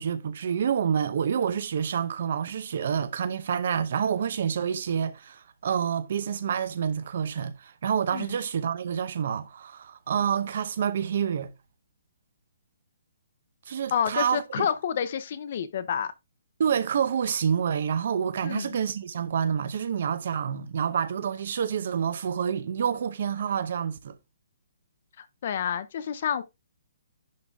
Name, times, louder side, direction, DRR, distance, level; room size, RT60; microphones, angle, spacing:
voice 1, 0.0-11.5 13.7-14.7 16.6-24.2, right 8 dB, 40° right, 0.7 m, -28 dB
voice 2, 13.9-16.1 18.4-18.8 25.2-26.4, left 8 dB, 35° left, 0.6 m, -29 dB
10.5 x 3.8 x 3.5 m
hypercardioid pair, 180°, 0 cm